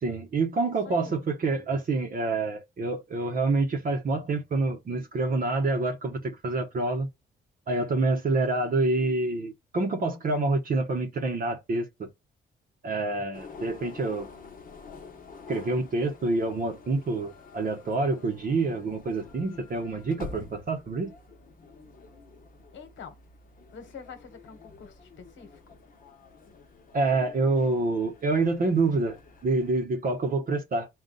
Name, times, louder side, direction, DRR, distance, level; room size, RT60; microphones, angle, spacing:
voice 1, 0.0-7.1 7.7-12.1 12.8-14.3 15.5-21.1 26.9-30.9, right 3 dB, 45° right, 0.8 m, -27 dB
voice 2, 0.6-1.2 22.7-23.2 23.7-25.6, left 6 dB, 70° left, 1.2 m, -46 dB
sound 1, 13.3-29.8, left 5 dB, 45° left, 0.9 m, -48 dB
3.9 x 2.3 x 3.8 m
cardioid pair, 90°, 20 cm